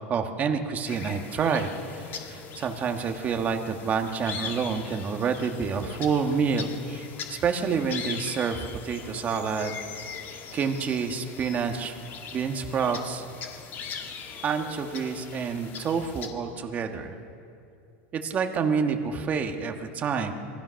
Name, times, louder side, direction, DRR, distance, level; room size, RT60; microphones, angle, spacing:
voice 1, 0.1-9.8 10.5-12.0 12.3-13.2 14.4-17.2 18.1-20.3, right 6 dB, 25° right, 5 dB, 1.4 m, -28 dB
sound 1, 0.8-16.3, left 6 dB, 30° left, 2.0 m, -40 dB
27.0 x 23.0 x 6.4 m, 2.5 s
supercardioid pair, 165°, 7 cm